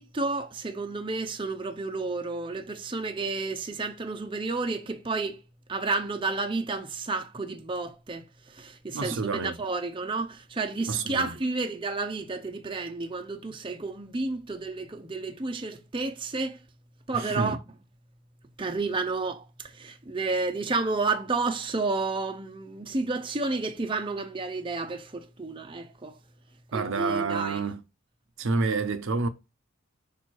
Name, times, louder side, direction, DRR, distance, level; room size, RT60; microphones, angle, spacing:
voice 1, 0.0-5.4 5.7-16.6 17.1-17.6 18.6-26.2 26.7-27.6, right 3 dB, 25° right, 0.6 m, -31 dB
voice 2, 8.9-9.6 10.9-11.3 17.1-17.6 26.7-27.8 28.4-29.3, right 4 dB, 60° right, 0.7 m, -28 dB
5.4 x 4.3 x 4.6 m
head